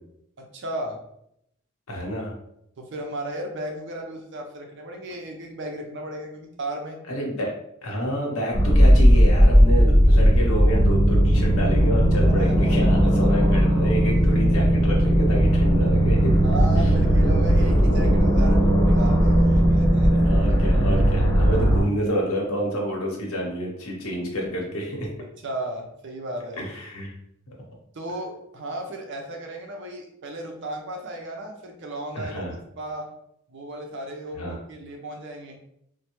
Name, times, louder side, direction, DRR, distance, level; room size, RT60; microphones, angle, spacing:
voice 1, 0.4-1.0 2.8-7.0 12.2-12.9 16.4-20.1 25.4-26.6 27.9-32.5 32.8-33.1 33.5-35.6, right 1 dB, 55° right, 2 dB, 0.6 m, -35 dB
voice 2, 1.9-2.3 7.1-7.5 7.8-16.3 20.1-25.1 26.6-27.1 32.1-32.5 34.3-34.6, equal, 80° left, -1 dB, 0.9 m, -29 dB
sound 1, 8.5-21.8, equal, 5° left, 1.4 m, -17 dB
3.2 x 2.1 x 3.0 m, 0.75 s
head